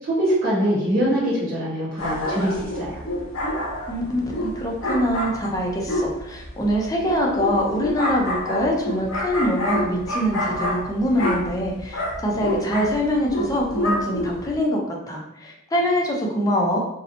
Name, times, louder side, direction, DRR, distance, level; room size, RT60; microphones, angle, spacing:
voice 1, 0.0-3.0, equal, 45° right, -8 dB, 0.9 m, -23 dB
sound 1, 2.0-14.6, equal, 70° left, 0.6 m, -28 dB
voice 2, 3.9-14.8 15.1-16.8, equal, 15° left, -1 dB, 0.4 m, -24 dB
2.6 x 2.0 x 2.7 m, 0.88 s
head